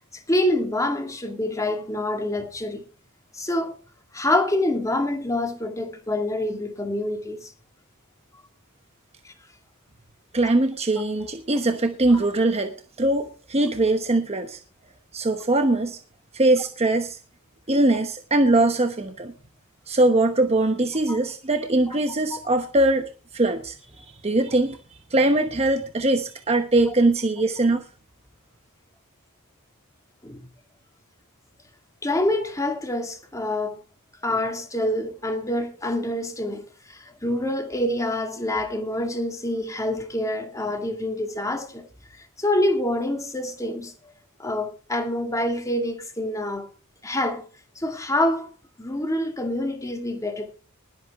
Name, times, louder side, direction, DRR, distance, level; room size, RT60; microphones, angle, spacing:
voice 1, 0.1-2.8 3.3-3.8 4.1-7.5 9.2-9.3 10.4-10.5 12.1-12.2 21.1-21.2 21.9-22.0 22.3-22.4 30.2-30.4 32.0-33.8 34.2-41.8 42.1-43.9 44.4-46.7 47.0-47.4 47.8-48.5 48.8-50.5, left 1 dB, 15° left, 2.1 m, -26 dB
voice 2, 10.3-14.6 15.1-16.0 16.3-17.2 17.7-19.3 19.9-24.8 25.1-27.8, right 2 dB, 30° right, 1.1 m, -22 dB
20.5 x 8.2 x 3.6 m
head